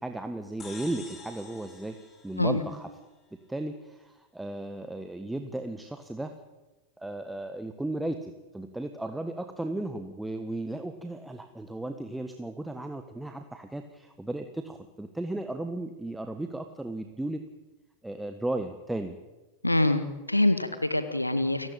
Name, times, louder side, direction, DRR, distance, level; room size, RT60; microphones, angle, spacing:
voice 1, 0.0-2.0 2.2-2.9 3.5-6.3 7.0-17.4 18.0-19.2, right 1 dB, 5° right, 7 dB, 1.6 m, -35 dB
sound 1, 0.6-3.2, left 3 dB, 20° left, 5.0 m, -48 dB
voice 2, 19.6-21.7, left 1 dB, 85° left, 10 dB, 1.7 m, -25 dB
29.5 x 16.0 x 8.9 m, 1.1 s
figure-of-eight pair, 90°, 0 cm